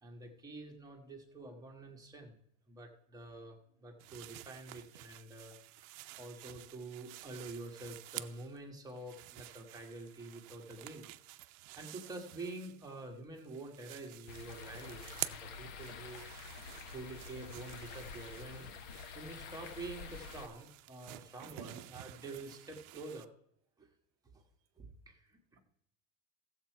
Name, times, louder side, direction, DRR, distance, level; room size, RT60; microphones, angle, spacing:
voice 1, 0.0-2.4 2.7-11.1 11.8-16.2 16.9-18.8 19.1-23.3 23.8-23.9 24.2-24.4 24.8-25.6, right 2 dB, 10° right, 1.3 m, -48 dB
sound 1, 4.0-8.6 8.9-13.1 13.4-23.3, right 18 dB, 80° right, 0.7 m, -50 dB
sound 2, 14.3-20.5, left 5 dB, 55° left, 1.2 m, -48 dB
voice 2, 21.1-22.0, right 9 dB, 30° right, 0.8 m, -51 dB
15.5 x 7.5 x 4.5 m
cardioid pair, 180°, 42 cm